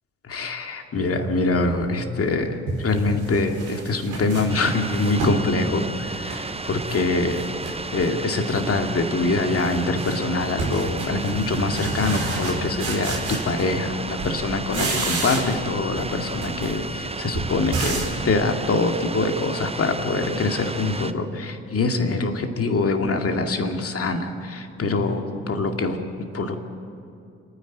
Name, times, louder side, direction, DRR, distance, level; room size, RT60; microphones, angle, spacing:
voice 1, 0.3-7.4 7.9-26.6, left 3 dB, 45° left, 4 dB, 2.4 m, -24 dB
sound 1, 2.0-2.1 2.7-5.5 5.9-7.0 7.3-8.1 8.5-8.9 9.2-13.9 14.2-15.7 16.0-18.2, right 3 dB, 65° right, 5.2 m, -30 dB
sound 2, 4.5-21.1, right 3 dB, 20° right, 0.9 m, -33 dB
29.5 x 10.0 x 10.0 m, 2.6 s
hypercardioid pair, 45°, 32 cm